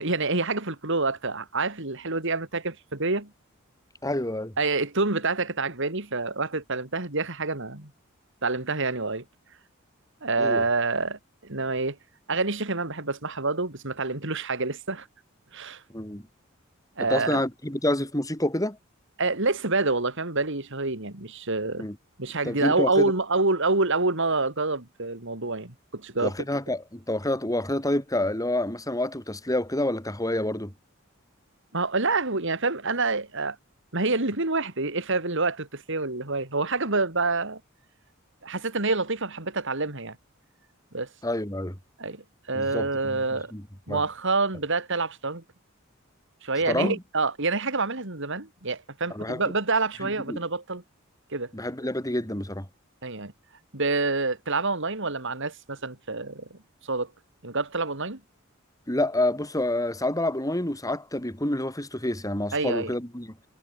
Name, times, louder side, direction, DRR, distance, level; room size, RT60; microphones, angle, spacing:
voice 1, 0.0-3.3 4.6-7.9 8.4-9.2 10.2-12.0 12.3-15.1 15.5-15.8 17.0-17.4 19.2-21.9 22.2-26.3 31.7-33.6 33.9-37.6 38.4-40.2 40.9-41.1 42.0-43.5 43.9-45.4 46.4-50.8 51.3-51.5 53.0-53.3 53.7-56.6 56.8-57.1 57.4-58.2 62.5-62.9, right 3 dB, 65° right, 3.7 m, -27 dB
voice 2, 4.0-4.5 10.4-10.7 15.9-16.2 17.0-18.8 21.8-22.0 22.4-23.1 26.2-30.7 41.2-41.8 42.5-43.2 43.5-44.0 46.7-47.0 49.1-49.4 50.0-50.4 51.5-52.7 58.9-63.3, left 1 dB, 15° left, 6.6 m, -28 dB
head